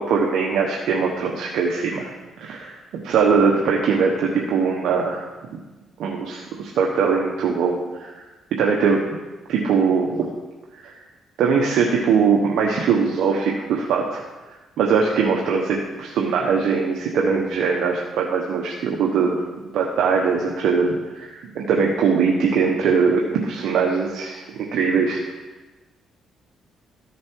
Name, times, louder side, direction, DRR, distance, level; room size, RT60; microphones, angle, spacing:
voice 1, 0.0-2.1 2.4-5.3 6.0-8.3 8.6-9.0 9.5-10.3 10.7-10.9 11.4-14.2 14.8-19.4 19.7-25.2, right 5 dB, 80° right, -1 dB, 1.2 m, -21 dB
14.0 x 7.3 x 4.7 m, 1.2 s
cardioid pair, 90°, 0 cm